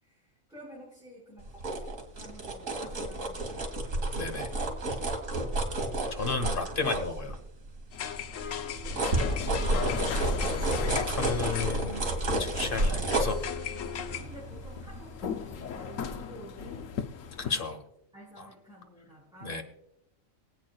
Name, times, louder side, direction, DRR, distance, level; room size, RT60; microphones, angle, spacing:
voice 1, 0.0-5.8 8.0-10.5 14.2-17.8 18.1-19.6, right 1 dB, 5° right, -7 dB, 4.9 m, -51 dB
sound 1, 1.4-7.7 8.1-15.6 16.0-16.2, right 2 dB, 75° right, 2.4 m, -31 dB
voice 2, 4.1-4.5 6.1-7.4 10.8-12.1 12.4-13.4 17.5-17.8 18.4-18.5 19.4-19.6, left 4 dB, 40° left, 7 dB, 1.4 m, -33 dB
sound 2, 7.9-17.5, left 7 dB, 70° left, 1.1 m, -36 dB
24.5 x 8.7 x 2.4 m, 0.81 s
omnidirectional pair, 1.4 m